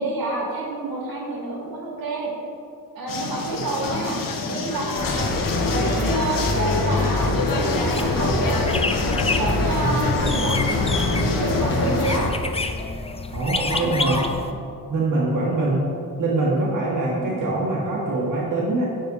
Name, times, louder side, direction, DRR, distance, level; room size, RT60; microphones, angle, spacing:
voice 1, 0.0-2.3 2.9-5.2 5.7-8.6 9.2-10.6 11.2-12.3 13.5-14.2 17.2-17.3, right 2 dB, 75° right, -1 dB, 2.1 m, -28 dB
sound 1, 3.1-12.2, left 3 dB, 65° left, 1.2 m, -27 dB
sound 2, 4.9-12.3, left 2 dB, 35° left, 1.5 m, -25 dB
sound 3, 7.9-14.5, left 3 dB, 15° left, 0.5 m, -29 dB
voice 2, 13.3-14.2 14.9-15.8 16.2-18.9, right 2 dB, 60° right, -5 dB, 1.7 m, -23 dB
9.1 x 6.0 x 5.5 m, 2.5 s
cardioid pair, 105°, 36 cm